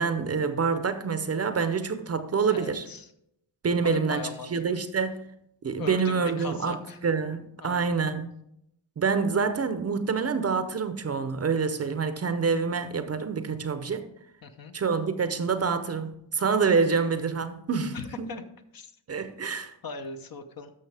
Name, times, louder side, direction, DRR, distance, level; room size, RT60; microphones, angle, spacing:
voice 1, 0.0-2.8 3.6-4.2 4.5-5.2 5.6-8.3 9.0-14.0 14.7-18.3 19.1-19.7, right 5 dB, 35° right, 0.7 m, -27 dB
voice 2, 2.5-3.1 3.8-4.8 5.8-7.0 7.6-7.9 14.4-14.7 17.9-18.4 18.7-18.9 19.8-20.7, left 4 dB, 50° left, 0.9 m, -39 dB
12.0 x 6.4 x 3.4 m
cardioid pair, 115°, 45 cm